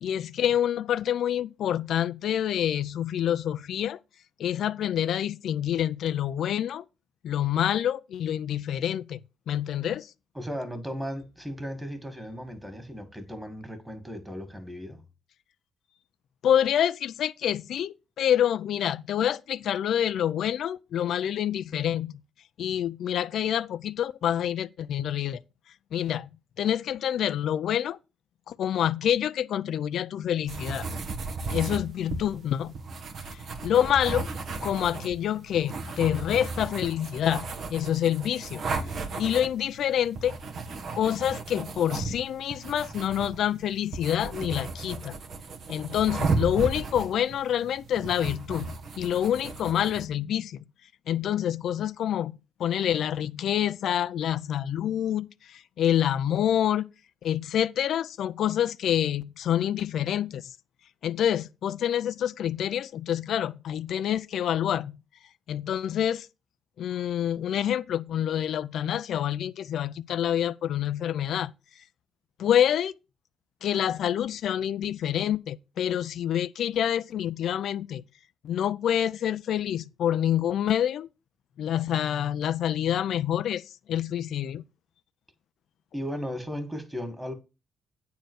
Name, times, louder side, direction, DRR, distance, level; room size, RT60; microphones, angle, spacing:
voice 1, 0.0-4.0 4.4-6.9 7.2-9.2 9.5-10.1 16.4-22.1 22.6-25.4 25.9-26.3 26.6-28.0 28.5-30.9 31.5-32.7 33.3-34.3 34.6-38.6 38.9-40.4 40.9-45.2 45.7-50.6 51.1-52.3 52.6-56.9 57.2-60.6 61.0-65.0 65.5-66.3 66.8-71.5 72.4-72.9 73.6-78.0 78.4-81.1 81.6-84.6, left 10 dB, 70° left, 0.4 m, -27 dB
voice 2, 10.4-15.0 85.9-87.3, equal, 10° right, 2.3 m, -36 dB
sound 1, 30.5-50.0, right 3 dB, 60° right, 1.4 m, -35 dB
9.3 x 4.4 x 6.4 m
cardioid pair, 90°, 0 cm